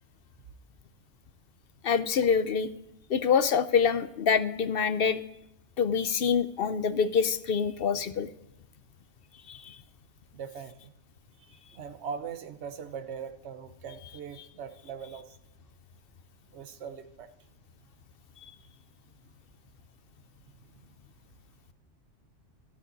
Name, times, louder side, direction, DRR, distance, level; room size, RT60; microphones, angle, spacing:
voice 1, 1.8-2.7 3.1-5.2 5.8-8.3 9.5-9.8 18.4-18.5, left 6 dB, 55° left, 12 dB, 0.8 m, -26 dB
voice 2, 10.3-10.9 11.4-15.3 16.5-17.3, right 6 dB, 65° right, 9 dB, 1.2 m, -41 dB
12.5 x 8.3 x 4.0 m, 0.86 s
omnidirectional pair, 1.3 m